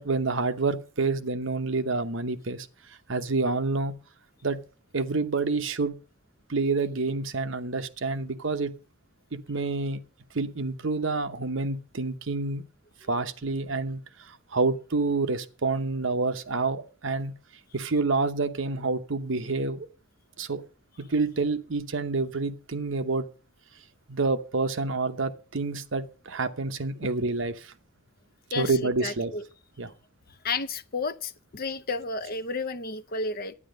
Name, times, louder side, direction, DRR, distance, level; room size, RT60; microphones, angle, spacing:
voice 1, 0.0-2.7 3.1-3.9 4.4-4.6 4.9-5.9 6.5-8.7 9.3-10.0 10.3-12.6 13.1-17.3 17.7-19.9 20.4-20.6 21.0-23.3 24.1-27.7 28.6-29.3 29.8-29.9, right 3 dB, 65° right, 0.9 m, -28 dB
voice 2, 28.5-29.4 30.4-33.5, left 3 dB, 45° left, 0.7 m, -32 dB
11.0 x 9.5 x 5.2 m
head